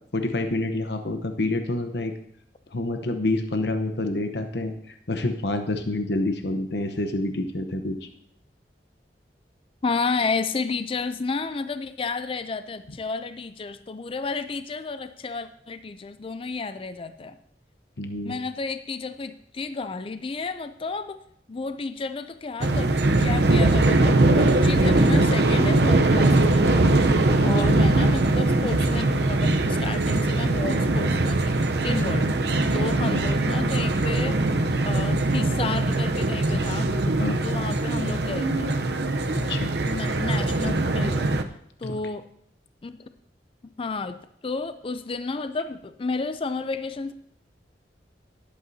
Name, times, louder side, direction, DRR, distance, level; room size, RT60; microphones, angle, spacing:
voice 1, 0.1-2.1 2.7-4.7 5.1-8.1 18.0-18.4 27.6-27.8 33.0-33.2 36.5-36.6 37.2-37.4 39.3-39.7 41.8-42.0, left 2 dB, 70° left, 6 dB, 0.9 m, -27 dB
voice 2, 9.8-17.4 18.2-21.2 21.5-22.9 23.2-26.9 27.4-31.6 31.8-32.3 32.7-34.4 34.9-36.9 37.4-38.9 39.9-41.3 41.8-42.2 42.8-43.1 43.8-47.1, left 4 dB, 30° left, 11 dB, 0.4 m, -31 dB
sound 1, 22.6-41.4, right 2 dB, 65° right, 0.7 m, -21 dB
18.5 x 8.4 x 2.8 m, 0.70 s
head